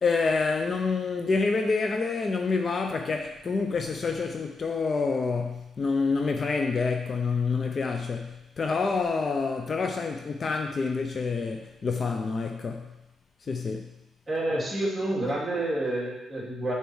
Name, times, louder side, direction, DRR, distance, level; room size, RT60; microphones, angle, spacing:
voice 1, 0.0-12.9 13.4-13.9, left 4 dB, 40° left, 0.6 m, -27 dB
voice 2, 14.3-16.7, right 1 dB, 15° right, 2.9 m, -29 dB
6.9 x 4.3 x 6.2 m
cardioid pair, 90°, 0 cm